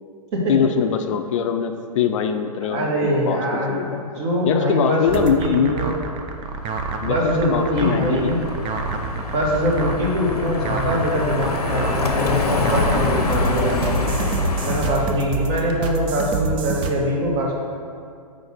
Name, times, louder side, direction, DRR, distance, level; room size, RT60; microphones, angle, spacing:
voice 1, 0.5-4.0 4.4-5.8 7.0-8.5 10.3-10.4, left 7 dB, 55° left, 7 dB, 0.4 m, -23 dB
voice 2, 2.6-5.9 7.0-8.4 9.3-14.1 14.6-17.5, equal, 45° right, -2 dB, 1.4 m, -23 dB
sound 1, 5.1-16.9, right 5 dB, 25° right, 0.4 m, -28 dB
Car passing by, 6.7-15.3, left 3 dB, 90° left, 0.7 m, -25 dB
4.9 x 4.0 x 5.8 m, 2.3 s
hypercardioid pair, 125°, 19 cm